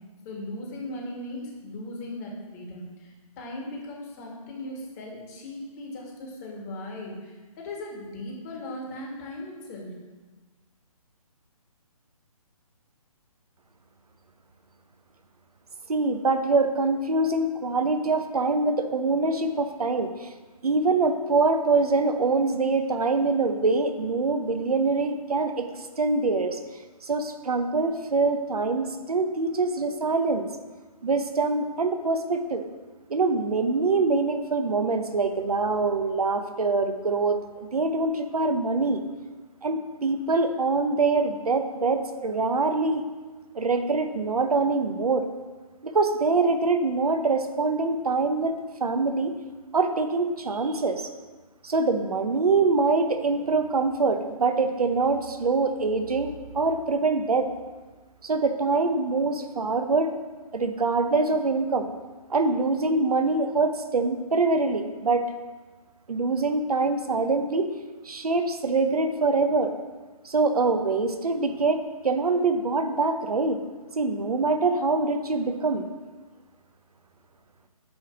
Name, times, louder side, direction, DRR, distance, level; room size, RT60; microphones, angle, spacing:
voice 1, 0.2-9.9, left 1 dB, 25° left, -1 dB, 1.7 m, -38 dB
voice 2, 15.9-20.3 20.6-25.7 26.0-26.6 27.0-30.5 31.0-32.7 33.1-39.0 39.6-43.0 43.5-45.3 45.8-48.5 48.8-49.3 49.7-51.1 51.6-57.5 58.2-60.1 60.5-61.9 62.3-65.2 66.1-67.7 68.0-69.7 70.2-73.6 74.0-75.9, right 3 dB, 80° right, 7 dB, 0.8 m, -24 dB
9.0 x 3.2 x 5.7 m, 1.3 s
figure-of-eight pair, 145°, 19 cm